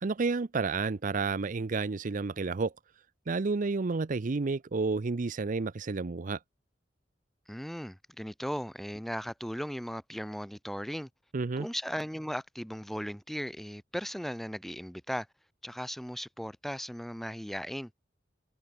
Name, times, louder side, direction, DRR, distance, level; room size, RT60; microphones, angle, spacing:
voice 1, 0.0-2.7 3.3-6.4 11.3-11.7, right 4 dB, 45° right, 0.5 m, -30 dB
voice 2, 7.5-11.1 11.6-15.3 15.6-17.9, equal, ahead, 1.3 m, -37 dB
head